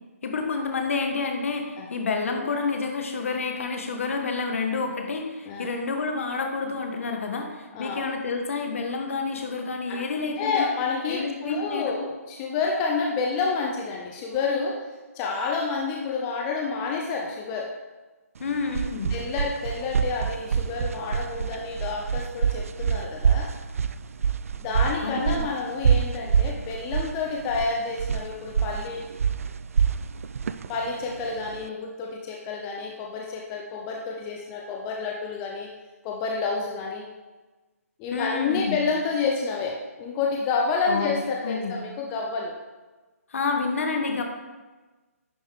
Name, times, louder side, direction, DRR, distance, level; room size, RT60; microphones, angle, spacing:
voice 1, 0.2-10.7 11.1-12.0 18.4-19.1 25.0-25.4 38.1-38.8 40.9-41.1 41.4-41.8 43.3-44.2, left 4 dB, 60° left, 3 dB, 1.4 m, -29 dB
voice 2, 7.7-8.0 9.9-10.0 10.4-14.9 15.1-17.7 19.1-23.5 24.5-29.1 30.7-35.7 36.0-37.0 38.0-42.5, left 4 dB, 20° left, -1 dB, 0.6 m, -29 dB
sound 1, 18.4-31.7, right 7 dB, 65° right, 0.4 m, -26 dB
10.5 x 5.2 x 3.6 m, 1.2 s
hypercardioid pair, 160°, 8 cm